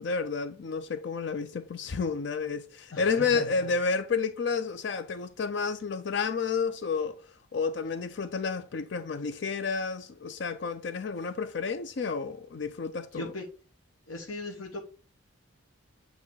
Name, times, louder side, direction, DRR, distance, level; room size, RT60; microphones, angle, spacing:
voice 1, 0.0-7.2 7.5-13.3, left 5 dB, 55° left, 0.4 m, -30 dB
voice 2, 2.9-3.7 13.1-13.5 14.1-14.8, left 2 dB, 80° left, 1.2 m, -38 dB
8.3 x 3.0 x 4.7 m
head